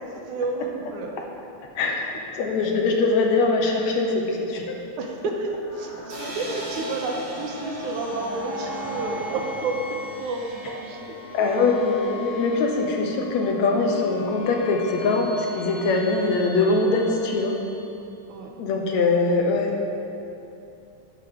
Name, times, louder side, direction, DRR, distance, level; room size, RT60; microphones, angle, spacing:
voice 1, 0.2-1.2 5.0-11.2 18.3-18.6, right 3 dB, 85° right, 2 dB, 2.4 m, -31 dB
voice 2, 1.8-4.7 11.3-17.5 18.6-19.7, left 3 dB, 70° left, 1 dB, 2.2 m, -22 dB
sound 1, 5.5-18.0, left 1 dB, 50° left, 2.9 m, -37 dB
sound 2, 6.1-9.9, right 1 dB, 45° right, 2.6 m, -41 dB
12.5 x 9.7 x 3.7 m, 2.7 s
omnidirectional pair, 3.4 m